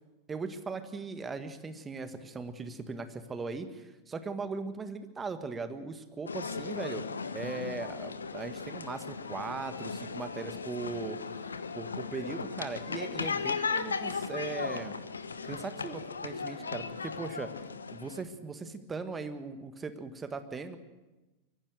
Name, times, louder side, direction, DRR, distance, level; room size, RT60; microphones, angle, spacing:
voice 1, 0.3-7.0 7.3-11.2 11.7-14.9 15.4-17.5 17.9-20.8, right 4 dB, 15° right, 10 dB, 1.6 m, -39 dB
sound 1, 6.3-18.2, left 5 dB, 75° left, 1.1 m, -37 dB
23.5 x 15.0 x 7.8 m, 1.1 s
figure-of-eight pair, 90°, 0 cm